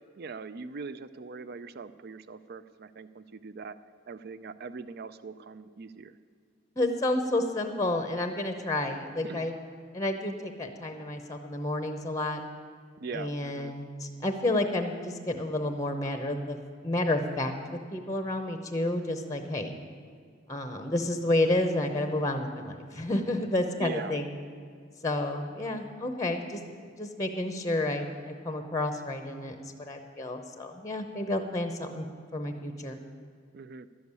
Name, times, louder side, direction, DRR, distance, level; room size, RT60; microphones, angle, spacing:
voice 1, 0.2-3.8 4.1-6.2 9.2-9.5 13.0-13.7 23.8-24.2 33.5-33.9, right 4 dB, 50° right, 14 dB, 0.4 m, -41 dB
voice 2, 6.8-9.6 9.9-12.4 13.1-16.6 16.8-17.5 17.9-19.7 20.5-24.3 25.0-26.6 27.0-32.1 32.3-33.0, left 1 dB, 15° left, 6 dB, 0.7 m, -30 dB
11.5 x 7.1 x 9.5 m, 2.1 s
head